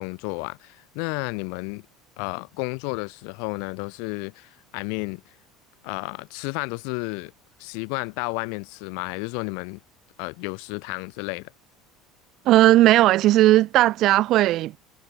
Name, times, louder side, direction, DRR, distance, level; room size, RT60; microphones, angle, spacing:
voice 1, 0.0-1.8 2.2-5.2 5.8-7.3 7.6-9.8 10.2-11.5, left 40 dB or more, 70° left, 3.3 m, -32 dB
voice 2, 12.4-14.8, right 15 dB, 60° right, 6.1 m, -17 dB
hypercardioid pair, 80°, 0 cm